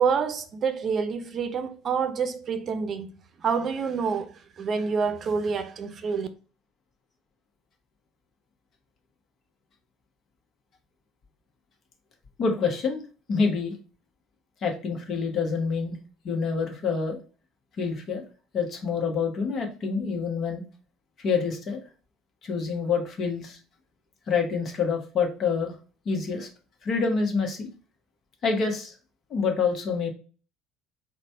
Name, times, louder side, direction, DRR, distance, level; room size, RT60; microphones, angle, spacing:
voice 1, 0.0-3.1 3.4-6.3, right 6 dB, 45° right, 0.7 m, -27 dB
voice 2, 12.4-13.0 13.3-13.7 14.6-16.0 16.2-17.2 17.8-18.2 18.5-20.6 21.2-21.8 22.4-23.6 24.3-25.7 26.0-26.5 26.8-27.7 28.4-29.0 29.3-30.1, left 5 dB, 50° left, 1.2 m, -27 dB
4.0 x 2.3 x 4.3 m
hypercardioid pair, 60°, 0 cm